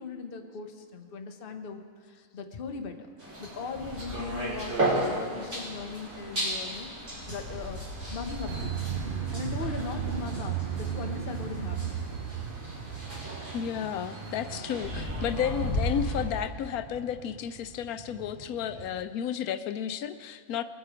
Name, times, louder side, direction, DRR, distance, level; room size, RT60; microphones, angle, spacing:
voice 1, 0.0-1.8 2.1-3.1 3.4-6.9 7.3-7.9 8.1-8.9 9.3-12.0, left 5 dB, 45° left, 5 dB, 1.1 m, -39 dB
sound 1, 3.2-16.2, right 1 dB, 85° right, 4.6 m, -34 dB
sound 2, 8.5-19.0, right 9 dB, 60° right, 0.6 m, -37 dB
voice 2, 13.5-20.6, left 9 dB, 90° left, 11 dB, 1.1 m, -32 dB
21.0 x 8.0 x 5.0 m, 2.2 s
omnidirectional pair, 1.5 m